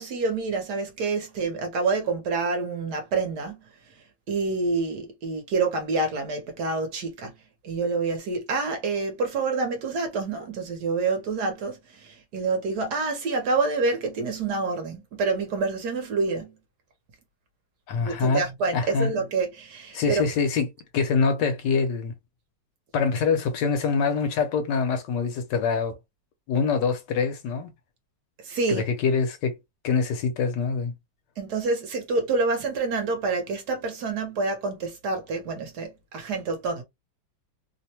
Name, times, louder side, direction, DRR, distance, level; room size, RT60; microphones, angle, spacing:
voice 1, 0.0-3.7 4.3-7.4 7.6-16.6 18.0-20.2 28.4-28.8 31.4-36.8, right 3 dB, 65° right, 1.2 m, -27 dB
voice 2, 17.9-18.4 18.7-19.1 19.9-20.7 20.9-22.1 22.9-26.0 26.5-27.7 28.7-29.6 29.8-30.9, left 5 dB, 75° left, 1.2 m, -24 dB
3.2 x 2.1 x 2.8 m
omnidirectional pair, 2.1 m